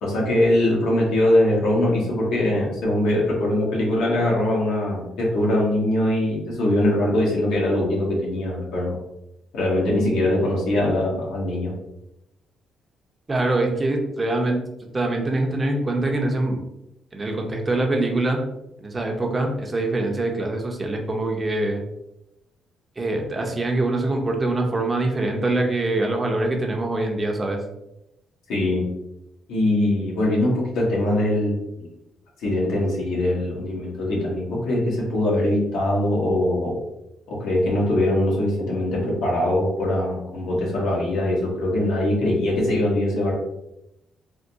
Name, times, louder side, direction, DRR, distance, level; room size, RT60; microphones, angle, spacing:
voice 1, 0.0-9.0 9.5-11.7 28.5-28.8 29.5-31.9 32.4-36.8 37.3-43.3, left 1 dB, 85° left, -4 dB, 1.2 m, -22 dB
voice 2, 13.3-14.6 14.9-16.6 17.1-18.4 18.8-21.8 23.0-27.6, right 2 dB, 25° right, 2 dB, 0.6 m, -24 dB
3.4 x 2.2 x 2.7 m, 0.86 s
cardioid pair, 90°, 0 cm